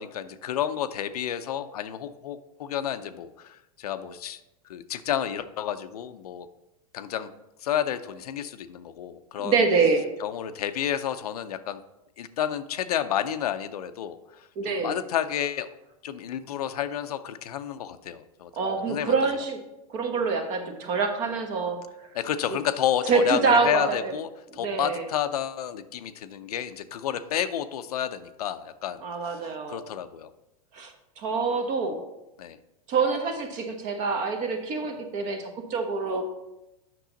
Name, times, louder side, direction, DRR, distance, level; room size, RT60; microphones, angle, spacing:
voice 1, 0.0-4.4 4.7-6.5 6.9-7.3 7.6-9.6 10.2-11.8 12.2-15.7 16.0-18.5 18.9-19.1 22.1-29.4 29.7-30.3 32.4-32.6, left 10 dB, 90° left, 11 dB, 0.6 m, -30 dB
voice 2, 9.4-10.1 14.6-15.0 18.6-19.6 19.9-21.8 23.1-24.1 24.5-25.1 29.0-29.8 30.7-32.0 32.9-36.2, right 4 dB, 40° right, 5 dB, 1.3 m, -26 dB
7.6 x 6.1 x 3.9 m, 0.93 s
supercardioid pair, 135°, 19 cm